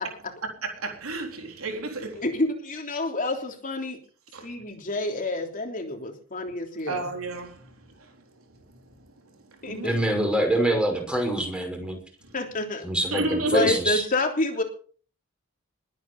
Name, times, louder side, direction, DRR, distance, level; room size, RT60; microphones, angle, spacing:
voice 1, 0.6-2.2 4.3-4.5 6.9-8.1 9.6-10.0 13.1-13.8, right 2 dB, 75° right, 4.0 m, -32 dB
voice 2, 2.2-4.0 4.4-7.0 9.6-9.9 12.3-12.9 13.5-14.6, left 2 dB, 40° left, 3.3 m, -28 dB
voice 3, 9.8-12.0 12.8-14.0, right 1 dB, 5° right, 5.6 m, -25 dB
21.5 x 9.4 x 5.4 m
head